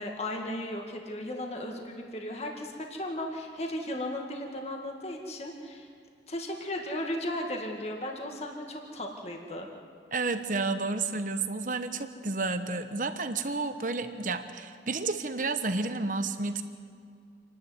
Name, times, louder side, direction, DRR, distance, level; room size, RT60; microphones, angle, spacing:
voice 1, 0.0-5.9 6.3-9.7, left 1 dB, 35° left, 2 dB, 2.1 m, -36 dB
voice 2, 10.1-16.6, right 3 dB, 50° right, 9 dB, 1.2 m, -31 dB
28.0 x 11.5 x 9.4 m, 2.3 s
head